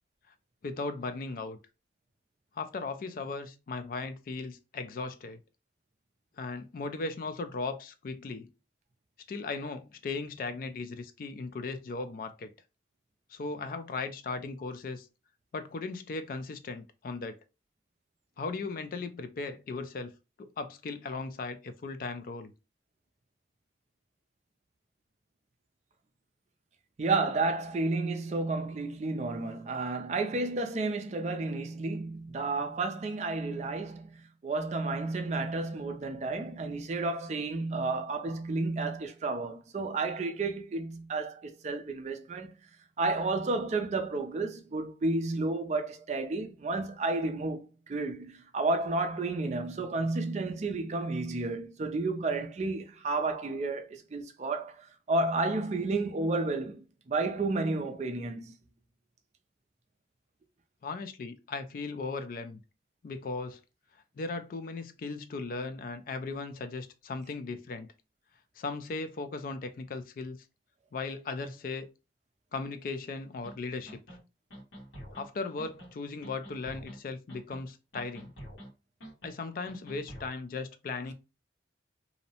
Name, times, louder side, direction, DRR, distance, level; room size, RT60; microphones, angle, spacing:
voice 1, 0.6-1.6 2.6-5.4 6.4-8.5 9.3-12.5 13.3-15.1 15.5-17.4 18.4-20.1 20.4-22.5 60.8-62.6 63.0-63.6 64.2-67.9 68.6-70.4 70.9-71.9 72.5-74.2 75.1-78.3 79.2-81.1, left 3 dB, 50° left, 0.3 m, -37 dB
voice 2, 27.0-42.5 43.0-54.8 55.1-58.5, right 3 dB, 40° right, 0.4 m, -31 dB
sound 1, 73.4-73.5 73.9-74.2 74.5-75.3 75.6-75.9 76.2-77.0 77.3-77.7 77.9-78.7 79.0-79.3 79.6-80.3, equal, 80° left, 1.3 m, -46 dB
2.6 x 2.0 x 2.7 m
head